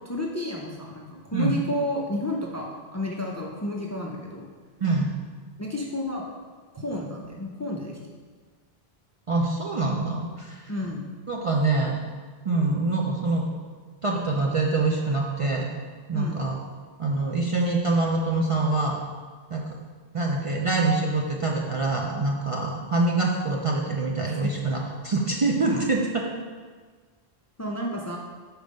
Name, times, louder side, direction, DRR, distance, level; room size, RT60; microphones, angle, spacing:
voice 1, 0.0-4.5 5.6-6.2 6.7-8.0 10.7-11.0 16.1-16.4 24.3-24.5 27.6-28.2, left 1 dB, 25° left, -1 dB, 0.4 m, -31 dB
voice 2, 9.3-10.7 11.3-12.0 12.4-13.5 14.0-15.7 16.1-16.6 17.0-19.0 19.5-19.7 20.1-26.3, right 3 dB, 45° right, -1 dB, 0.5 m, -25 dB
5.3 x 4.4 x 5.2 m, 1.5 s
omnidirectional pair, 1.0 m